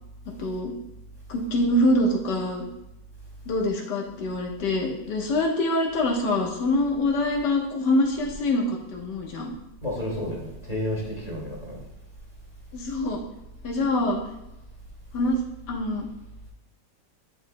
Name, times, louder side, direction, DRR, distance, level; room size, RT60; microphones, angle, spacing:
voice 1, 0.3-0.7 1.3-2.7 3.5-9.6 12.7-13.2 13.6-14.2 15.1-15.4 15.7-16.1, left 1 dB, 70° left, 0 dB, 1.8 m, -25 dB
voice 2, 9.8-11.8, left 1 dB, 20° left, -4 dB, 2.2 m, -31 dB
10.5 x 4.9 x 2.2 m, 0.91 s
omnidirectional pair, 1.9 m